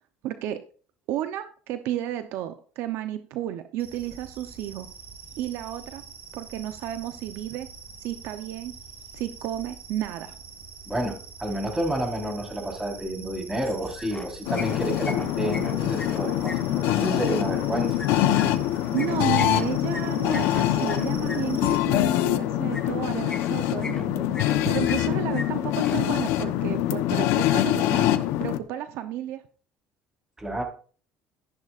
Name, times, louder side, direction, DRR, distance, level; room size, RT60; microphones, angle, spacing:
voice 1, 0.2-0.6 1.1-4.9 5.4-6.0 6.3-7.7 8.0-8.7 9.1-10.4 18.9-28.1 28.4-29.4, right 12 dB, 70° right, 9 dB, 0.8 m, -32 dB
sound 1, 3.8-21.8, right 5 dB, 50° right, 5.0 m, -45 dB
voice 2, 10.9-18.0 30.4-30.6, right 1 dB, 15° right, 1 dB, 4.2 m, -30 dB
sound 2, 13.6-14.3 14.5-16.6 18.0-21.4 22.7-22.9 23.3-24.0 24.3-25.1 25.3-25.4 25.7-26.0, left 3 dB, 15° left, 2.6 m, -38 dB
sound 3, 14.5-28.6, left 13 dB, 75° left, 0.9 m, -24 dB
14.0 x 10.5 x 2.5 m, 0.41 s
cardioid pair, 110°, 4 cm